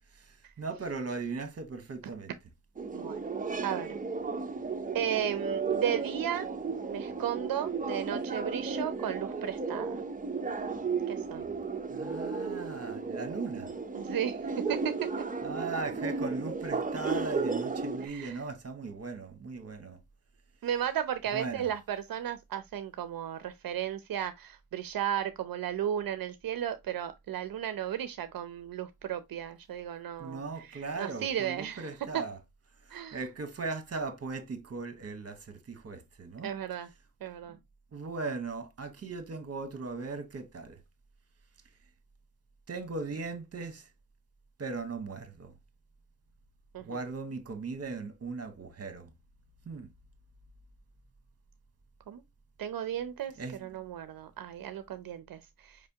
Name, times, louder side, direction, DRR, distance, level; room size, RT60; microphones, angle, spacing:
voice 1, 0.6-2.3 11.9-13.7 15.4-20.0 21.3-21.7 30.2-32.4 32.9-36.5 37.5-37.6 37.9-40.8 42.7-43.9 44.6-45.5 46.8-49.1 49.7-49.9 53.4-53.8, right 4 dB, 45° right, 1.1 m, -38 dB
sound 1, 2.8-18.1, right 4 dB, 25° right, 0.6 m, -34 dB
voice 2, 3.6-4.0 4.9-6.5 6.9-10.0 11.1-11.5 13.9-14.4 14.7-15.0 18.0-18.4 20.6-32.2 32.9-33.2 36.4-36.9 37.2-37.6 46.7-47.0 52.1-52.2 52.6-53.3 53.6-55.8, right 10 dB, 75° right, 0.5 m, -34 dB
5.0 x 3.3 x 2.7 m
wide cardioid pair, 95°, 34 cm